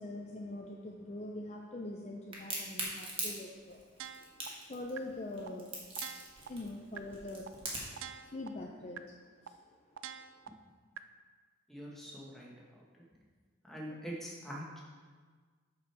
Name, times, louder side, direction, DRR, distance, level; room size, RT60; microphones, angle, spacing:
voice 1, 0.0-4.0 4.7-5.9 6.4-7.5 8.2-9.0 9.4-9.7, left 1 dB, 30° left, 0 dB, 0.5 m, -43 dB
Crack, 2.3-8.0, right 2 dB, 25° right, 1.3 m, -40 dB
sound 1, 4.0-4.5 5.0-5.1 5.5-5.6 6.0-6.5 7.0-7.1 7.5-7.6 8.0-8.5 9.0-9.1 9.5-9.6 10.0-10.5 11.0-11.1, right 9 dB, 75° right, 0.3 m, -44 dB
voice 2, 11.7-12.8 13.6-14.8, equal, ahead, -4 dB, 1.2 m, -44 dB
6.2 x 5.9 x 4.5 m, 1.5 s
head